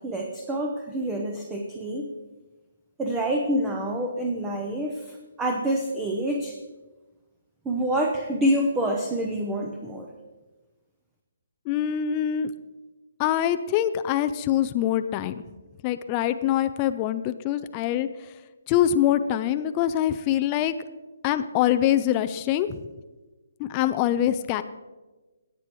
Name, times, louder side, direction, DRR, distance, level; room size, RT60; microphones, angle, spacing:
voice 1, 0.0-2.1 3.0-6.6 7.6-10.1, right 1 dB, 10° right, 1 dB, 0.8 m, -27 dB
voice 2, 11.7-12.5 13.2-15.4 15.8-18.1 18.7-20.7 21.2-22.7 23.6-24.6, left 11 dB, 25° left, 10 dB, 0.4 m, -24 dB
17.5 x 8.2 x 3.1 m, 1.2 s
hypercardioid pair, 155°, 0 cm